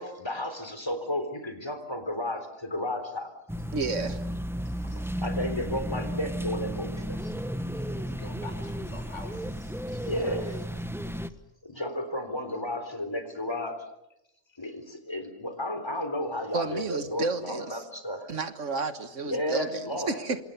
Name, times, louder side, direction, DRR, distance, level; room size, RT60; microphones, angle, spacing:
voice 1, 0.0-3.3 4.8-7.3 10.1-10.8 11.6-13.8 14.6-18.3 19.3-20.2, left 1 dB, 20° left, 8 dB, 3.9 m, -33 dB
sound 1, 3.5-11.3, equal, ahead, 0.8 m, -33 dB
voice 2, 3.7-4.2 16.5-17.8 18.3-20.4, right 4 dB, 65° right, 10 dB, 1.8 m, -31 dB
voice 3, 8.0-10.4, left 2 dB, 60° left, 6 dB, 5.4 m, -46 dB
27.0 x 27.0 x 6.9 m, 0.86 s
omnidirectional pair, 1.4 m